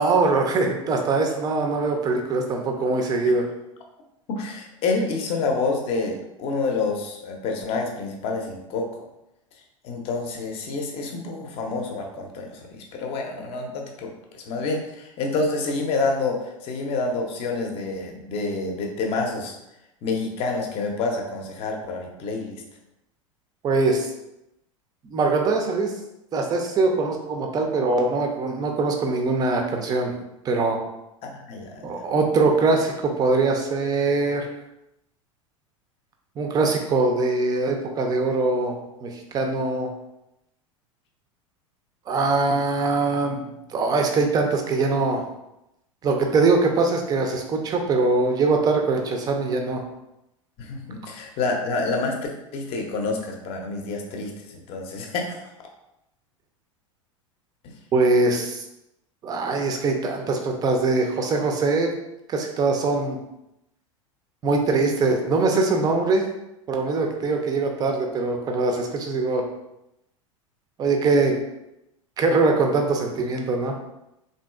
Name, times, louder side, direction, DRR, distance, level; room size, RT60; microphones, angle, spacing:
voice 1, 0.0-3.5 23.6-24.1 25.0-25.9 26.3-30.1 30.4-30.8 31.8-34.5 36.4-39.9 42.1-45.2 46.0-49.8 57.9-58.6 59.2-61.9 62.3-63.2 64.4-66.3 66.7-69.4 70.8-71.4 72.2-73.8, right 3 dB, 25° right, 3 dB, 0.5 m, -22 dB
voice 2, 4.3-8.9 9.8-19.6 20.0-22.6 31.2-32.0 50.6-52.1 52.5-55.4 57.6-57.7, left 3 dB, 35° left, 1 dB, 0.6 m, -28 dB
3.5 x 2.6 x 2.3 m, 0.88 s
figure-of-eight pair, 80°, 17 cm